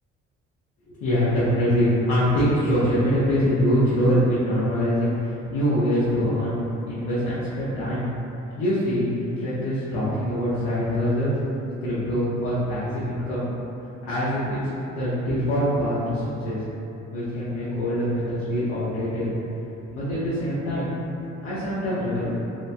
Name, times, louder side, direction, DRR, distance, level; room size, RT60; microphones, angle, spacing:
voice 1, 1.0-6.5 6.9-8.0 8.6-11.3 11.8-13.5 14.0-14.6 14.9-16.6 17.1-19.3 19.9-21.0 21.4-22.3, equal, 90° left, -11 dB, 0.6 m, -24 dB
2.9 x 2.2 x 2.5 m, 2.9 s
cardioid pair, 85°, 29 cm